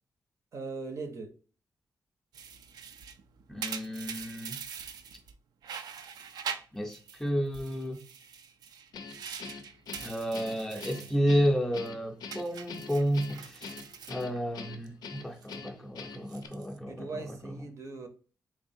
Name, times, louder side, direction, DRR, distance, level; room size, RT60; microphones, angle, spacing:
voice 1, 0.5-1.3 11.0-11.2 16.9-18.1, right 3 dB, 50° right, 0.7 m, -40 dB
sound 1, 2.3-5.3 5.6-7.2 7.5-11.2 11.5-11.9 12.3-14.9 15.2-15.6 16.1-16.8, right 7 dB, 85° right, 0.4 m, -43 dB
voice 2, 3.5-4.6 6.7-8.0 10.0-13.8 14.1-17.6, equal, 5° left, 0.5 m, -31 dB
Guitar, 8.9-16.5, left 5 dB, 85° left, 0.5 m, -44 dB
3.6 x 3.3 x 2.6 m
wide cardioid pair, 165°, 7 cm